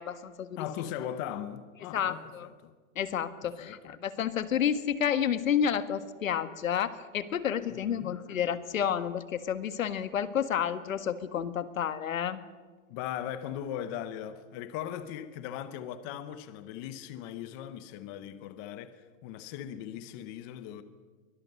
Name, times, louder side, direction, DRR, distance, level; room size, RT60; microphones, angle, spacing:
voice 1, 0.0-0.6 1.9-2.5 3.0-12.4, left 8 dB, 85° left, 1.7 m, -30 dB
voice 2, 0.6-2.7 3.4-3.9 7.7-8.1 12.9-20.8, left 10 dB, 15° left, 0.6 m, -39 dB
23.0 x 17.5 x 7.8 m
hypercardioid pair, 165°, 39 cm